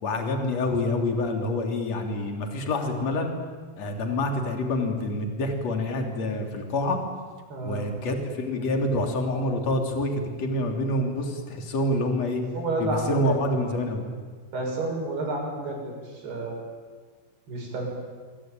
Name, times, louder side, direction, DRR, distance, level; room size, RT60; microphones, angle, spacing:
voice 1, 0.0-3.3 3.8-7.0 7.6-12.4 12.8-14.1, left 1 dB, 40° left, 3 dB, 4.1 m, -27 dB
voice 2, 7.5-7.9 12.5-13.3 14.5-16.6 17.5-17.9, right 2 dB, 65° right, 0 dB, 8.8 m, -30 dB
25.5 x 24.0 x 9.2 m, 1.5 s
omnidirectional pair, 5.0 m